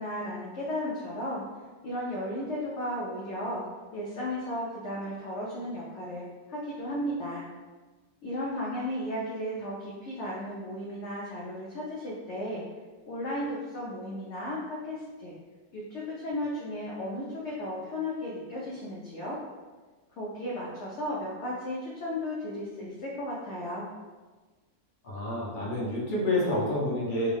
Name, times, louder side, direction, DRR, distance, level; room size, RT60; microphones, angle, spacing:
voice 1, 0.0-1.4 1.8-3.6 3.9-6.2 6.5-7.5 8.2-12.6 13.1-15.3 15.7-19.4 20.2-23.9, left 1 dB, 60° left, -5 dB, 0.8 m, -34 dB
voice 2, 25.0-27.3, left 1 dB, 40° left, -6 dB, 0.9 m, -28 dB
3.5 x 2.3 x 3.4 m, 1.3 s
omnidirectional pair, 1.6 m